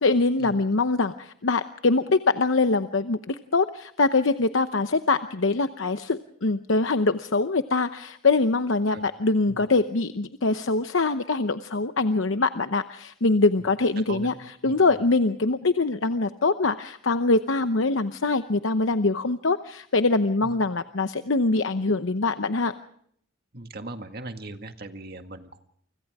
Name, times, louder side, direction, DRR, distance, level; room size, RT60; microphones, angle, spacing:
voice 1, 0.0-14.3 14.6-22.7, left 3 dB, 75° left, 9 dB, 0.9 m, -23 dB
voice 2, 14.1-14.4 14.6-15.0 20.4-20.5 23.5-25.6, right 2 dB, 50° right, 7 dB, 1.9 m, -39 dB
30.0 x 25.0 x 3.6 m, 0.65 s
head